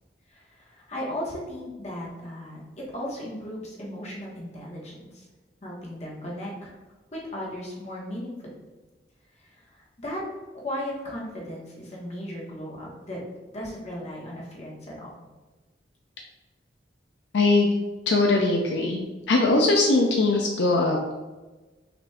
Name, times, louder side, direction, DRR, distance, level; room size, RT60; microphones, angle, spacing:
voice 1, 0.3-5.3 5.6-6.7 7.3-8.5 9.4-10.2 10.5-13.2 13.5-15.1, equal, 40° left, -4 dB, 1.3 m, -36 dB
voice 2, 17.3-17.7 18.1-19.0 19.3-21.2, left 2 dB, 80° left, 1 dB, 0.5 m, -21 dB
5.9 x 2.5 x 3.3 m, 1.2 s
head